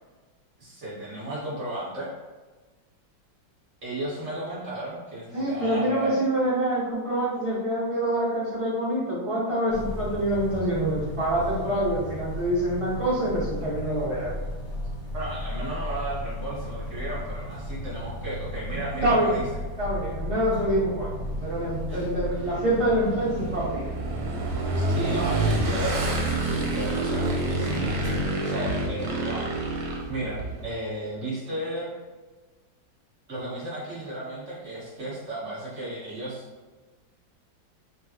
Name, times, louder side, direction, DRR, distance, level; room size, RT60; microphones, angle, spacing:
voice 1, 0.6-2.1 3.8-6.2 15.1-19.4 21.9-22.1 24.7-29.5 29.8-31.9 33.3-36.4, right 1 dB, 40° right, -8 dB, 1.7 m, -34 dB
voice 2, 5.3-14.3 18.7-19.3 19.8-21.1 21.4-23.8, right 1 dB, 20° right, -8 dB, 1.1 m, -26 dB
sound 1, 9.7-28.3, equal, 55° left, 1.4 m, -35 dB
Motorcycle / Engine, 21.0-30.7, right 2 dB, 75° right, 1.3 m, -28 dB
3.7 x 3.2 x 2.9 m, 1.3 s
omnidirectional pair, 2.0 m